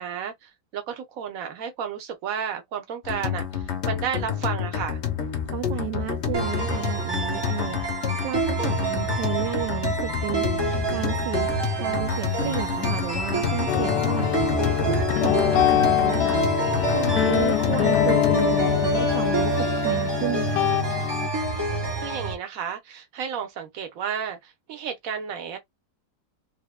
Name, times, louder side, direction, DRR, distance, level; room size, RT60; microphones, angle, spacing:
voice 1, 0.0-5.0 22.0-25.6, right 7 dB, 55° right, 1.3 m, -32 dB
sound 1, 3.0-18.5, left 9 dB, 55° left, 0.8 m, -29 dB
voice 2, 5.5-11.5 11.8-14.4 14.9-16.5 16.9-20.6, right 15 dB, 75° right, 1.1 m, -32 dB
sound 2, 6.3-22.3, right 4 dB, 20° right, 0.7 m, -28 dB
sound 3, 13.7-21.3, left 13 dB, 75° left, 1.1 m, -24 dB
3.5 x 3.2 x 2.2 m
omnidirectional pair, 2.0 m